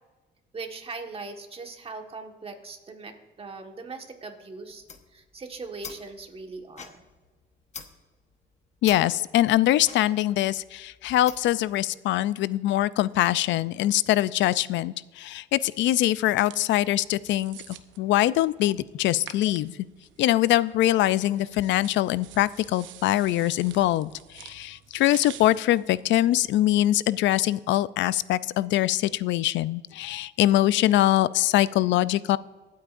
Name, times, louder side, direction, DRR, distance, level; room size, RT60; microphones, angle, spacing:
voice 1, 0.5-4.8 5.1-7.0, right 3 dB, 30° right, 4 dB, 1.5 m, -40 dB
sound 1, 4.7-11.7, left 5 dB, 35° left, 1.1 m, -46 dB
voice 2, 8.8-17.6 18.0-19.7 20.2-32.4, left 14 dB, 70° left, 18 dB, 0.4 m, -23 dB
sound 2, 16.2-26.9, right 12 dB, 80° right, 0.8 m, -49 dB
23.5 x 8.5 x 2.6 m, 1.3 s
cardioid pair, 115°, 19 cm